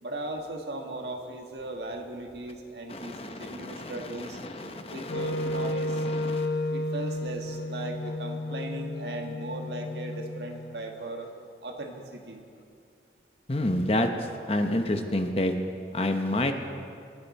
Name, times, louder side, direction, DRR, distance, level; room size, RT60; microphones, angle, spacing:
voice 1, 0.0-4.4 4.9-6.1 6.7-11.3 11.6-12.5, right 2 dB, 75° right, 3 dB, 1.5 m, -38 dB
voice 2, 2.9-6.5 13.5-14.1 14.5-15.5 15.9-16.5, left 1 dB, 35° left, 6 dB, 0.9 m, -29 dB
Wind instrument woodwind instrument, 5.1-11.1, left 1 dB, 70° left, 0.8 m, -32 dB
26.0 x 9.2 x 4.2 m, 2.4 s
head